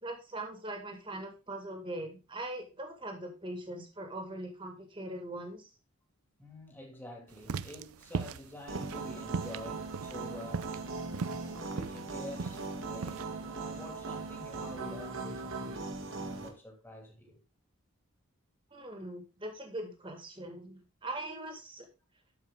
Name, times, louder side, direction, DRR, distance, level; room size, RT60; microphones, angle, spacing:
voice 1, 0.0-5.7 18.7-21.9, right 1 dB, 20° right, 2.0 m, -41 dB
voice 2, 6.4-10.8 11.4-17.4, left 1 dB, 10° left, 2.4 m, -48 dB
sound 1, 7.4-13.2, right 5 dB, 85° right, 0.5 m, -38 dB
sound 2, 8.7-16.5, right 3 dB, 65° right, 1.8 m, -39 dB
12.5 x 5.3 x 3.7 m
head